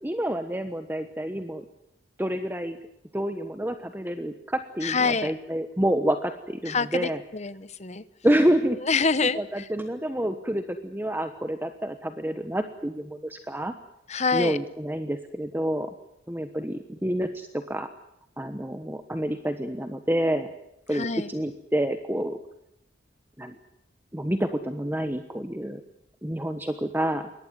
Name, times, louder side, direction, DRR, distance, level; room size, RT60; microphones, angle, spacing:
voice 1, 0.0-1.6 2.2-2.8 3.1-7.2 8.2-8.8 9.2-13.7 14.3-15.9 16.3-17.9 18.4-20.5 20.9-22.4 23.4-23.5 24.1-25.8 26.2-27.3, right 1 dB, 10° right, 8 dB, 1.1 m, -28 dB
voice 2, 4.8-5.3 6.7-8.0 8.8-9.6 14.1-14.6 20.9-21.3, left 4 dB, 35° left, 15 dB, 1.0 m, -26 dB
23.0 x 19.0 x 9.5 m, 0.82 s
head